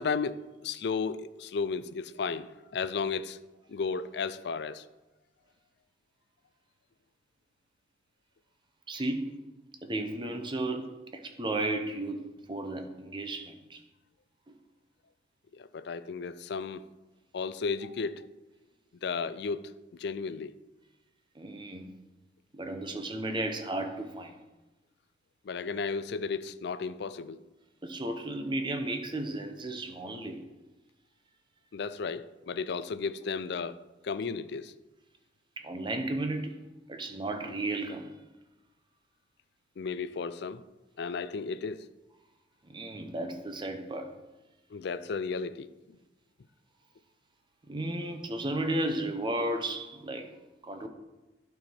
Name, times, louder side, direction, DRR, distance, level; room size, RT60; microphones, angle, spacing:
voice 1, 0.0-3.4 3.7-4.8 15.5-16.8 17.3-18.3 19.0-20.5 25.4-27.4 31.7-33.8 34.0-34.7 39.8-40.6 41.0-41.9 44.7-46.0, left 5 dB, 65° left, 0.4 m, -34 dB
voice 2, 8.9-9.4 9.8-12.2 12.5-13.8 21.4-21.9 22.5-24.4 27.8-30.4 35.6-36.6 36.9-38.1 42.6-44.1 47.7-50.3 50.6-50.9, right 1 dB, 25° right, 0.8 m, -34 dB
11.0 x 4.7 x 4.4 m
head